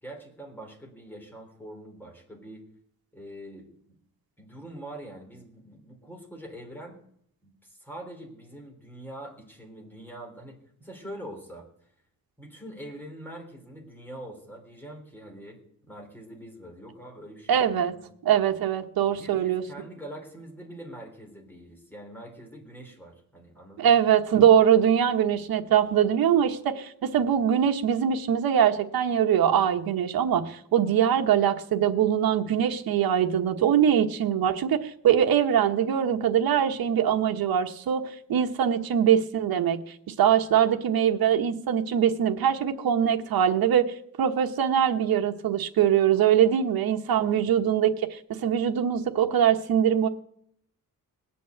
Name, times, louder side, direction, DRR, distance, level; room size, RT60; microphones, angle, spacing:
voice 1, 0.0-2.6 3.1-3.7 4.4-7.0 7.4-11.7 12.4-18.1 19.0-24.0 47.2-47.5, right 1 dB, 5° left, 0 dB, 3.6 m, -44 dB
voice 2, 17.5-17.9 18.2-19.6 23.8-38.0 38.3-39.8 40.1-50.1, right 9 dB, 75° right, 4 dB, 1.2 m, -22 dB
19.5 x 8.5 x 8.0 m, 0.69 s
wide cardioid pair, 165°, 36 cm